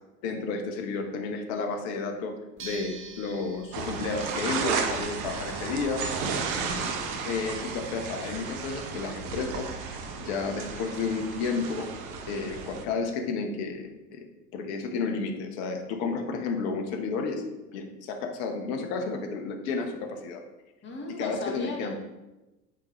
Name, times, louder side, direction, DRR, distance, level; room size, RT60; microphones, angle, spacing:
voice 1, 0.2-2.3 2.6-6.0 7.2-11.9 12.3-14.3 14.5-17.4 17.7-20.4 21.2-21.9, left 4 dB, 60° left, 5 dB, 1.2 m, -32 dB
sound 1, 2.6-8.0, right 4 dB, 25° right, 1.0 m, -48 dB
sound 2, 3.7-12.8, right 5 dB, 60° right, 1.0 m, -33 dB
voice 2, 6.3-7.1 20.8-21.9, left 2 dB, 25° left, 1 dB, 1.6 m, -38 dB
8.9 x 3.7 x 3.1 m, 1.0 s
hypercardioid pair, 80°, 47 cm